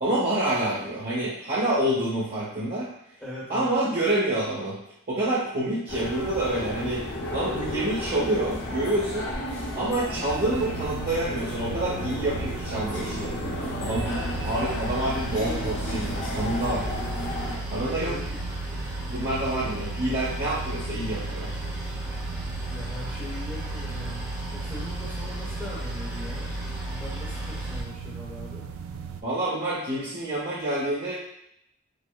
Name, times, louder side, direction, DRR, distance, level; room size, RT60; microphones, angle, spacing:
voice 1, 0.0-2.9 3.5-4.8 5.1-7.1 7.3-9.3 9.7-13.3 13.8-14.1 14.4-16.9 17.7-18.2 19.1-21.5 29.2-31.1, right 1 dB, 45° right, -9 dB, 0.8 m, -27 dB
voice 2, 3.2-3.7 13.4-13.7 17.7-18.4 22.6-26.5 26.9-28.7, left 1 dB, 5° left, -7 dB, 0.9 m, -40 dB
sound 1, 5.9-17.6, left 1 dB, 55° left, 0.6 m, -33 dB
sound 2, 10.3-29.2, right 7 dB, 75° right, 0.3 m, -38 dB
Boat Water vehicle, 14.0-27.8, equal, 15° right, 0.7 m, -35 dB
4.9 x 2.1 x 2.3 m, 0.75 s
head